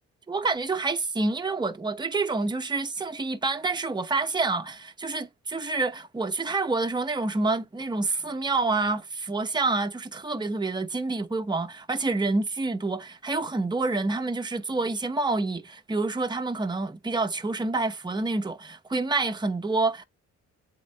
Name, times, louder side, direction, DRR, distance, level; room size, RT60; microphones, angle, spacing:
voice 1, 0.3-20.0, right 3 dB, 15° right, 0.9 m, -28 dB
8.2 x 3.6 x 3.5 m
cardioid pair, 90°, 30 cm